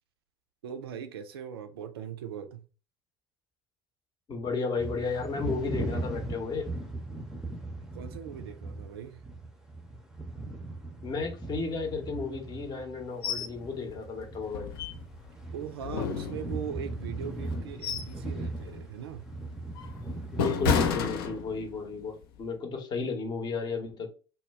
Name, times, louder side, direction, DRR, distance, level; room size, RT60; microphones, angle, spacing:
voice 1, 0.6-2.6 7.9-9.2 15.5-19.3, right 8 dB, 70° right, 0.4 m, -40 dB
voice 2, 4.3-6.7 11.0-14.7 20.3-24.1, left 4 dB, 30° left, 0.7 m, -33 dB
sound 1, 4.8-13.1 13.3-20.8, right 2 dB, 5° right, 0.6 m, -38 dB
sound 2, 13.2-13.5 13.9-14.0 14.5-15.3 15.8-16.8 17.4-18.2 18.6-18.9 19.4-21.9 22.2-22.4, left 6 dB, 60° left, 0.4 m, -31 dB
2.1 x 2.1 x 3.4 m
figure-of-eight pair, 65°, 13 cm